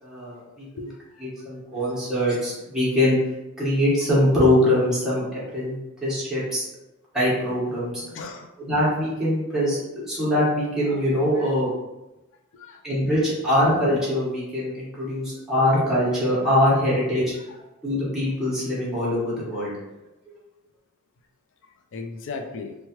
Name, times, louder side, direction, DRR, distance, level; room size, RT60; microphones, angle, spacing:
voice 1, 0.0-0.9 1.4-3.2 3.6-5.7 6.0-6.6 7.1-8.1 8.6-11.7 12.8-17.3 17.8-19.7, left 1 dB, ahead, -9 dB, 1.0 m, -23 dB
voice 2, 0.8-1.5 8.1-8.5 12.5-13.1 15.0-15.1 21.9-22.8, left 4 dB, 55° left, 5 dB, 0.4 m, -37 dB
3.0 x 2.2 x 2.9 m, 0.99 s
head